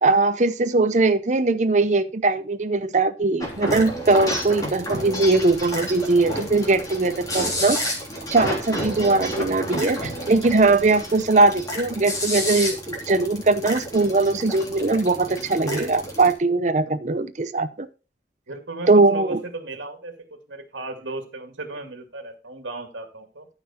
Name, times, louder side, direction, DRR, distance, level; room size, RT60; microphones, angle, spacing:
voice 1, 0.0-7.8 8.3-12.8 13.1-17.9 18.9-19.4, right 3 dB, 40° right, 12 dB, 0.6 m, -20 dB
sound 1, 3.4-16.3, equal, 20° left, 3.1 m, -31 dB
voice 2, 18.5-23.5, right 2 dB, 75° right, 5 dB, 2.2 m, -36 dB
13.5 x 5.7 x 4.3 m, 0.32 s
head